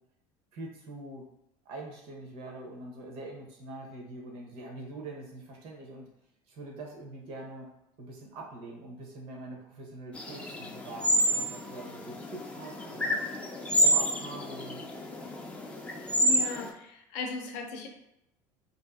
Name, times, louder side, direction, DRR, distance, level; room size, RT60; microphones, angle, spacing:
voice 1, 0.5-1.3 1.6-6.1 6.5-7.7 8.0-13.2 13.8-14.8, right 2 dB, 65° right, 0 dB, 0.8 m, -43 dB
sound 1, 10.1-16.7, right 1 dB, 10° left, 0.3 m, -29 dB
voice 2, 16.2-17.9, left 3 dB, 85° left, 3 dB, 0.5 m, -37 dB
2.6 x 2.5 x 2.3 m, 0.82 s
supercardioid pair, 115°, 10 cm